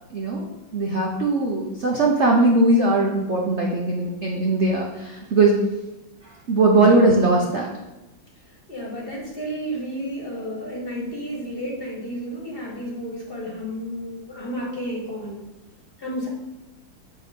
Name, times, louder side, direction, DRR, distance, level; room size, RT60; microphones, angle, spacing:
voice 1, 0.1-0.4 0.7-5.5 6.5-7.7, right 2 dB, 65° right, -1 dB, 0.6 m, -19 dB
voice 2, 8.7-15.4 16.0-16.3, equal, 30° left, -3 dB, 1.2 m, -32 dB
8.1 x 3.2 x 5.1 m, 1.0 s
omnidirectional pair, 2.3 m